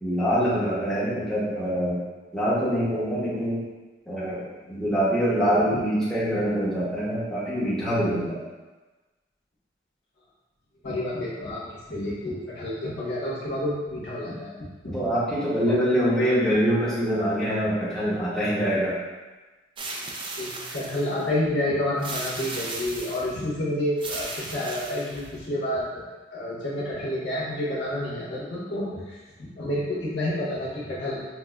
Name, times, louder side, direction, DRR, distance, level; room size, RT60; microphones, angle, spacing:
voice 1, 0.0-2.0 2.3-3.6 4.1-8.4 14.9-19.0, equal, ahead, -11 dB, 0.8 m, -24 dB
voice 2, 10.8-15.1 15.6-15.8 20.4-26.0 26.3-31.2, left 1 dB, 70° left, -8 dB, 1.2 m, -29 dB
sound 1, 19.8-21.2 22.0-23.4 24.0-25.4, right 2 dB, 25° right, 0.3 m, -36 dB
5.9 x 2.0 x 2.3 m, 1.2 s
head